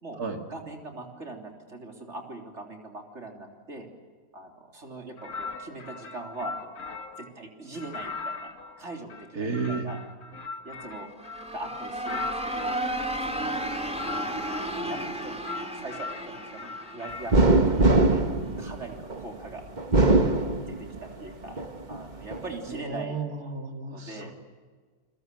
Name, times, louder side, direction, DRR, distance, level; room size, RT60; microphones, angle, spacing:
voice 1, 0.5-3.9 4.3-6.7 7.2-8.5 8.8-10.0 10.6-11.1 11.5-12.8 13.2-13.7 14.2-14.4 14.8-15.4 15.7-18.3 18.6-19.6 20.7-21.6 21.9-23.2 23.9-24.3, right 2 dB, 50° right, 2 dB, 3.9 m, -41 dB
sound 1, 5.2-7.3 7.7-12.9 13.5-15.1 15.4-17.4, left 4 dB, 60° left, 2.0 m, -39 dB
voice 2, 9.3-9.9 22.7-24.3, right 4 dB, 90° right, 4 dB, 2.9 m, -32 dB
sound 2, 11.1-17.9, right 1 dB, 5° right, 2.8 m, -33 dB
sound 3, 17.3-19.2 19.8-21.1 21.6-22.4, right 2 dB, 30° right, 1.5 m, -21 dB
30.0 x 21.5 x 7.8 m, 1.5 s
omnidirectional pair, 1.6 m